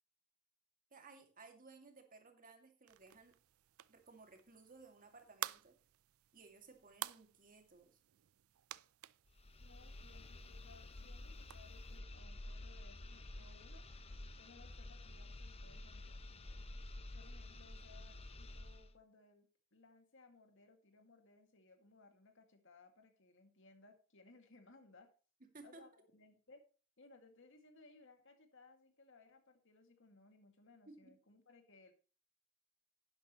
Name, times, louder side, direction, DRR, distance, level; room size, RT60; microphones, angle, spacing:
voice 1, 0.9-3.4 3.9-5.8 6.3-8.0 25.4-25.9 30.9-31.2, right 3 dB, 40° right, 5 dB, 2.3 m, -59 dB
sound 1, 2.9-12.0, right 13 dB, 80° right, 0.4 m, -52 dB
sound 2, 9.3-18.9, left 2 dB, 30° left, 0.9 m, -51 dB
voice 2, 9.6-13.8 14.4-16.6 17.1-25.1 25.6-26.6 27.0-31.9, left 3 dB, 60° left, 6 dB, 2.1 m, -64 dB
11.5 x 10.5 x 3.0 m, 0.36 s
head